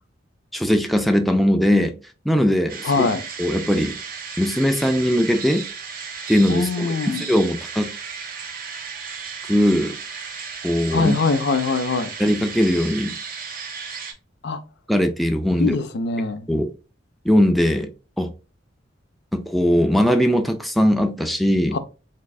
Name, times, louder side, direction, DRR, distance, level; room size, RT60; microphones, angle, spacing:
voice 1, 0.5-1.9 2.3-3.0 3.4-3.9 4.4-5.7 6.3-7.0 7.3-7.9 9.5-9.9 10.6-11.2 12.2-13.1 14.9-15.8 16.5-16.7 17.3-17.9 18.2-18.3 19.3-21.8, equal, ahead, 0.3 m, -19 dB
sound 1, 2.7-14.1, right 5 dB, 50° right, 0.8 m, -34 dB
voice 2, 2.8-3.2 6.5-7.3 10.9-12.1 14.4-14.6 15.6-16.5 21.7-21.8, left 4 dB, 60° left, 0.5 m, -22 dB
3.5 x 3.1 x 2.3 m
head